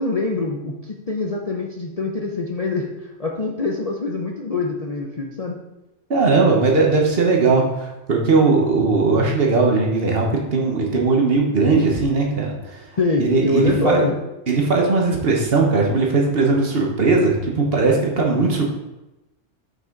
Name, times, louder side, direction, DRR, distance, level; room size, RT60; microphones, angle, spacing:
voice 1, 0.0-5.6 13.0-14.2, left 3 dB, 40° left, 0 dB, 0.7 m, -24 dB
voice 2, 6.1-12.9 13.2-14.0 14.5-18.7, right 3 dB, 55° right, 0 dB, 1.3 m, -18 dB
6.1 x 5.5 x 3.8 m, 0.97 s
omnidirectional pair, 1.3 m